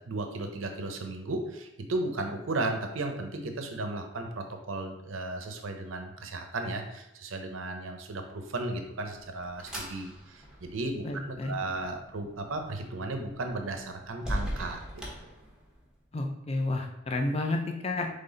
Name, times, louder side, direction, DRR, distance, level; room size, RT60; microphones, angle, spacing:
voice 1, 0.1-15.0, right 2 dB, 80° right, 5 dB, 0.6 m, -35 dB
sound 1, 8.8-16.0, equal, 5° right, 0.8 m, -41 dB
voice 2, 11.0-11.5 16.1-18.1, left 2 dB, 30° left, 3 dB, 0.5 m, -31 dB
3.9 x 3.2 x 3.9 m, 0.87 s
head